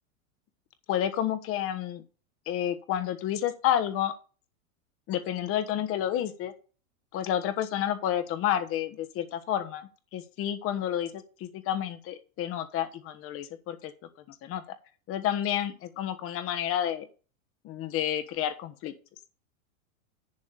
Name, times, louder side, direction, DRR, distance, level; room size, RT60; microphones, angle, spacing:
voice 1, 0.9-2.0 2.5-4.1 5.1-6.5 7.1-13.9 14.3-14.6 15.1-17.1 17.6-18.9, left 10 dB, 30° left, 11 dB, 1.2 m, -30 dB
10.5 x 3.6 x 7.4 m, 0.36 s
supercardioid pair, 140°, 42 cm